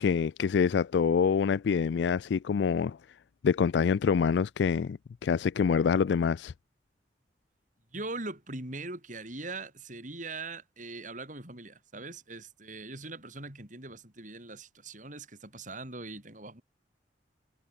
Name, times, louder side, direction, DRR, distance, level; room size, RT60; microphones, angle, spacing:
voice 1, 0.0-3.0 3.4-6.5, left 6 dB, 70° left, 0.3 m, -26 dB
voice 2, 7.9-16.6, right 2 dB, 45° right, 6.0 m, -41 dB
head